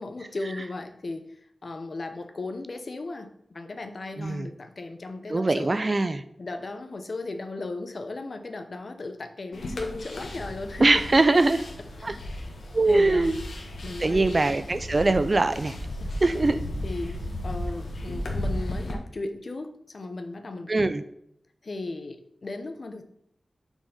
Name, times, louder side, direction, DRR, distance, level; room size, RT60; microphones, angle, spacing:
voice 1, 0.0-5.8 6.4-11.0 12.0-12.2 12.8-13.3 13.8-14.2 16.0-16.1 16.8-20.7 21.6-23.0, left 2 dB, 55° left, 7 dB, 0.8 m, -36 dB
voice 2, 4.2-4.5 5.3-6.2 10.8-11.6 12.0-12.1 12.7-13.3 14.0-15.8 16.2-16.6 20.7-21.0, right 2 dB, 40° right, 11 dB, 0.5 m, -22 dB
sound 1, 9.5-18.9, left 1 dB, 85° left, 1.4 m, -34 dB
5.9 x 4.4 x 5.5 m, 0.73 s
wide cardioid pair, 90°, 0 cm